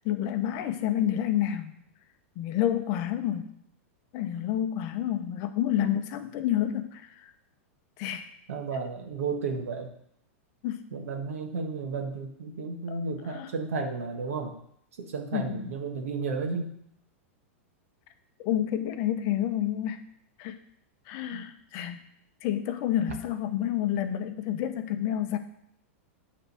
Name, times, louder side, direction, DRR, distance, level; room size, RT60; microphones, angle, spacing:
voice 1, 0.0-1.7 2.4-3.5 4.1-7.3 8.0-8.3 10.6-10.9 12.9-13.0 13.2-13.5 15.3-15.7 18.4-20.1 20.4-20.6 21.1-22.0 22.4-25.4, left 11 dB, 45° left, 8 dB, 0.8 m, -29 dB
voice 2, 8.5-9.9 10.9-14.6 15.0-16.7 21.3-21.4, right 4 dB, 90° right, 4 dB, 1.4 m, -33 dB
8.5 x 3.8 x 6.6 m, 0.72 s
supercardioid pair, 135°, 7 cm